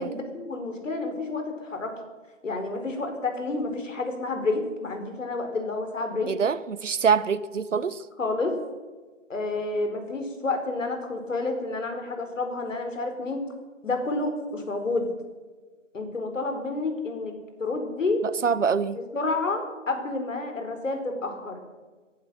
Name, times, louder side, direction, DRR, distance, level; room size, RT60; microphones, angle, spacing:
voice 1, 0.0-2.0 2.4-6.3 8.2-8.6 9.3-13.4 13.8-15.1 15.9-18.2 19.1-21.6, left 3 dB, 75° left, 6 dB, 4.6 m, -29 dB
voice 2, 6.3-8.0 18.2-19.0, right 6 dB, 75° right, 17 dB, 1.1 m, -25 dB
19.5 x 11.5 x 6.4 m, 1.3 s
hypercardioid pair, 175°, 38 cm